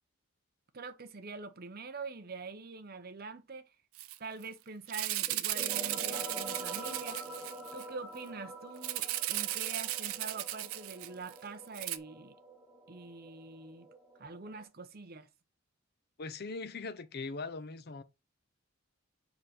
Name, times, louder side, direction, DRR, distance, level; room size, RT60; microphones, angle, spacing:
voice 1, 0.7-3.7 4.2-7.2 7.7-12.4 12.9-13.9 14.2-15.3, right 4 dB, 45° right, 0.7 m, -45 dB
Rattle (instrument), 4.0-4.2 4.4-4.5 4.9-7.8 8.8-11.4 11.7-12.0, right 15 dB, 80° right, 0.5 m, -36 dB
sound 1, 5.3-14.7, right 1 dB, ahead, 1.8 m, -47 dB
voice 2, 16.2-18.0, left 3 dB, 50° left, 0.6 m, -40 dB
5.1 x 4.4 x 4.2 m
head